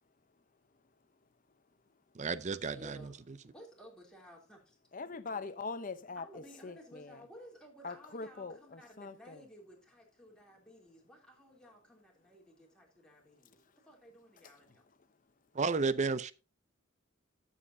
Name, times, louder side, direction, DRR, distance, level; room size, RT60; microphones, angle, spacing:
voice 1, 2.2-3.0 15.5-16.3, right 4 dB, 35° right, 0.5 m, -32 dB
voice 2, 2.7-3.2 3.4-4.8 5.0-5.1 6.2-14.8, equal, 5° left, 3.0 m, -56 dB
voice 3, 4.9-7.2 7.8-9.4, left 4 dB, 40° left, 0.7 m, -42 dB
12.5 x 7.4 x 2.7 m
head